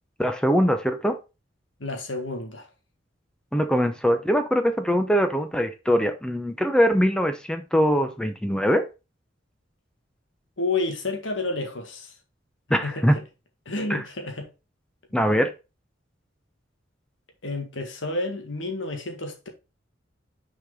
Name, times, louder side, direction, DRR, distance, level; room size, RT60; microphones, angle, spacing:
voice 1, 0.2-1.2 3.5-8.9 12.7-13.2 13.9-14.0 15.1-15.5, equal, 5° left, 0.8 m, -22 dB
voice 2, 1.8-2.7 10.6-12.1 12.8-13.0 13.7-14.5 17.4-19.5, left 2 dB, 85° left, 1.8 m, -30 dB
6.5 x 5.0 x 3.8 m
head